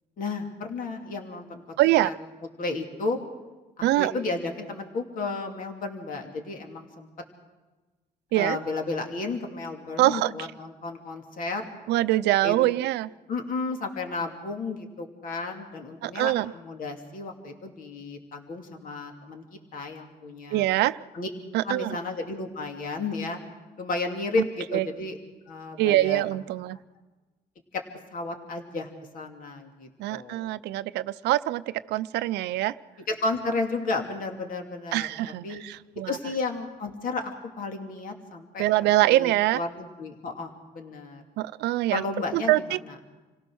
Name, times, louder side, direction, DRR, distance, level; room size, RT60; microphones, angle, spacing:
voice 1, 0.2-1.6 1.9-2.1 2.6-3.2 3.8-7.1 8.3-11.7 12.4-12.5 13.3-19.4 19.7-20.6 21.1-21.3 21.6-23.4 23.8-25.2 25.5-26.2 27.7-27.8 28.1-28.9 29.1-30.5 33.1-35.1 35.4-35.6 36.1-38.6 39.0-41.2 41.9-42.5, left 3 dB, 55° left, 3 dB, 2.7 m, -33 dB
voice 2, 1.8-2.1 3.8-4.1 8.3-8.6 10.0-10.5 11.9-13.1 16.0-16.5 20.5-21.0 21.5-22.0 24.7-24.9 25.8-26.8 30.0-31.6 31.9-32.8 34.9-36.2 38.6-39.6 41.4-42.0 42.3-42.8, right 16 dB, 80° right, 14 dB, 0.6 m, -24 dB
28.0 x 17.5 x 6.4 m, 1.2 s
cardioid pair, 110°, 17 cm